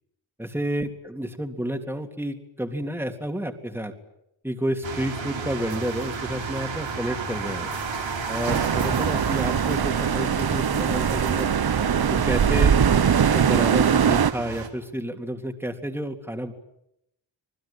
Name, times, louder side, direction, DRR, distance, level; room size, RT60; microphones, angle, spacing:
voice 1, 0.4-3.9 4.4-7.7 8.3-11.5 12.1-12.8 13.3-16.5, equal, 5° right, 3 dB, 3.4 m, -30 dB
sound 1, 4.8-14.7, right 5 dB, 75° right, 5.1 m, -33 dB
sound 2, 7.3-13.6, left 4 dB, 65° left, 6.1 m, -40 dB
sound 3, 8.5-14.3, right 8 dB, 55° right, 1.1 m, -21 dB
27.5 x 20.0 x 9.0 m, 0.80 s
cardioid pair, 65°, 45 cm